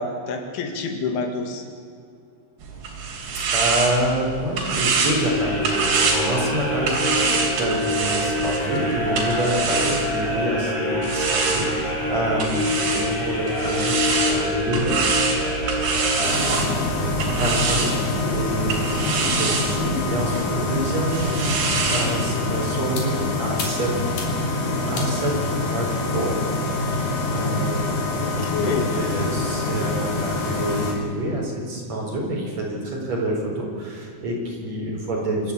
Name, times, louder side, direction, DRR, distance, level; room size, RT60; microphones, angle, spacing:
voice 1, 0.0-1.7 16.7-17.0 28.2-29.1, left 4 dB, 85° left, 5 dB, 4.4 m, -28 dB
sound 1, 2.6-10.4 11.0-22.1, right 4 dB, 65° right, 4.9 m, -26 dB
voice 2, 3.5-7.3 7.6-15.3 15.8-17.9 18.2-21.5 21.9-24.2 24.5-25.4 25.6-26.4 26.8-28.0 28.6-35.5, right 1 dB, 35° right, -2 dB, 5.1 m, -27 dB
sound 2, 4.8-17.0, left 1 dB, 30° left, 4.6 m, -26 dB
sound 3, 16.2-30.9, left 3 dB, 50° left, 4.6 m, -25 dB
26.5 x 14.0 x 8.5 m, 2.2 s
omnidirectional pair, 5.3 m